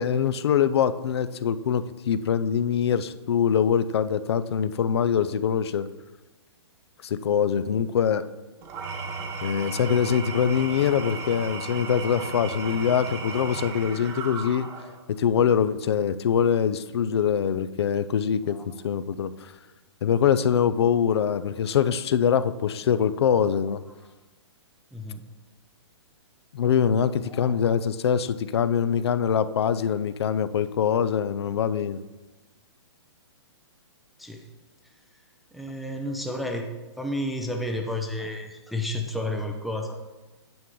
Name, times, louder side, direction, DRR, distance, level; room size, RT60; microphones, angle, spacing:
voice 1, 0.0-5.9 7.0-8.3 9.4-14.7 15.1-18.6 18.8-19.5 20.0-23.8 26.5-32.0, left 8 dB, 60° left, 13 dB, 0.5 m, -24 dB
Engine / Tools, 8.6-15.0, right 4 dB, 15° right, 0.9 m, -35 dB
voice 2, 24.9-25.2 27.3-27.7 34.2-34.5 35.5-36.7 37.0-40.0, left 1 dB, ahead, 2 dB, 0.4 m, -31 dB
9.5 x 7.0 x 3.8 m, 1.1 s
hypercardioid pair, 160°, 15 cm